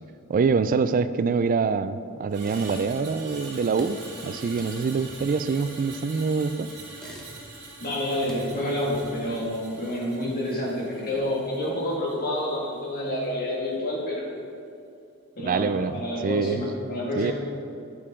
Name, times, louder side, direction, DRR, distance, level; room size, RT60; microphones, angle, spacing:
voice 1, 0.3-4.0 4.2-6.7 15.4-16.6 17.2-17.3, right 5 dB, 40° right, 12 dB, 0.3 m, -25 dB
Screech, 2.3-12.7 13.0-13.3, right 3 dB, 80° right, 2.1 m, -44 dB
sound 1, 2.4-3.2 3.4-6.4 6.8-7.7 8.0-9.4, equal, 5° left, 1.2 m, -46 dB
voice 2, 7.8-14.4 15.4-17.3, left 1 dB, 45° left, -4 dB, 2.0 m, -28 dB
8.5 x 8.4 x 3.8 m, 2.5 s
head